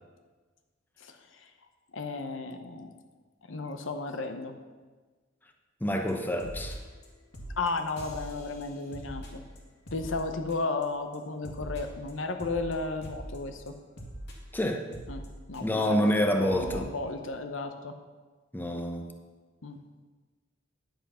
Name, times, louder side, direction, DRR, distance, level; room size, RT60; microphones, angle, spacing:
voice 1, 1.9-2.9 3.5-4.5 7.6-9.4 9.9-13.7 15.1-17.9 19.6-19.8, left 3 dB, 75° left, 7 dB, 0.9 m, -34 dB
voice 2, 5.8-6.8 14.5-14.8 15.6-16.9 18.5-19.1, equal, 10° left, 4 dB, 0.9 m, -27 dB
sound 1, 6.1-6.2 6.4-7.1 7.3-10.8 11.1-15.9 16.2-16.3 16.5-16.8, right 1 dB, 60° left, 2.1 m, -43 dB
10.5 x 8.0 x 5.7 m, 1.3 s
head